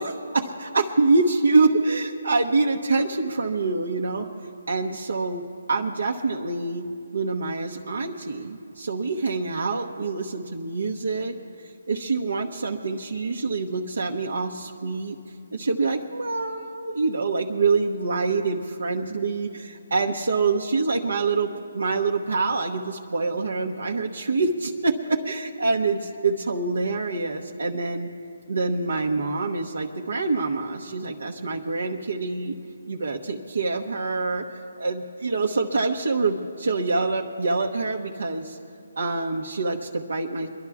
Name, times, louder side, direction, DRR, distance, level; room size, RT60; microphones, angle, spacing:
voice 1, 0.0-4.3 4.7-6.9 7.1-11.3 11.6-15.2 15.5-28.1 28.5-32.6 32.9-38.6 39.0-40.5, right 3 dB, 80° right, 0 dB, 1.0 m, -25 dB
24.0 x 11.0 x 3.6 m, 2.5 s
hypercardioid pair, 160°, 0 cm